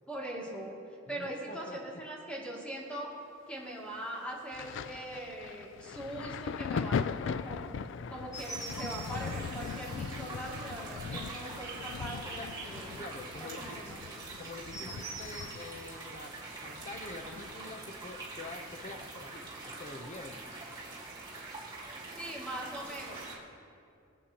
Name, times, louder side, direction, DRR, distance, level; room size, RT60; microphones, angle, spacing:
voice 1, 0.1-0.7 1.1-3.1 3.5-7.7 8.1-12.9 13.4-14.0 21.3-23.3, right 1 dB, 5° left, -5 dB, 2.5 m, -41 dB
voice 2, 1.1-2.0 12.2-12.5 12.9-13.8 14.4-16.4 16.6-20.6, left 3 dB, 35° left, 6 dB, 0.7 m, -46 dB
Thunder, 4.5-17.9 18.1-19.5 20.3-20.5, left 6 dB, 60° left, 0.3 m, -40 dB
sound 1, 8.3-23.3, right 3 dB, 20° right, 2.5 m, -44 dB
24.5 x 8.8 x 3.0 m, 2.5 s
head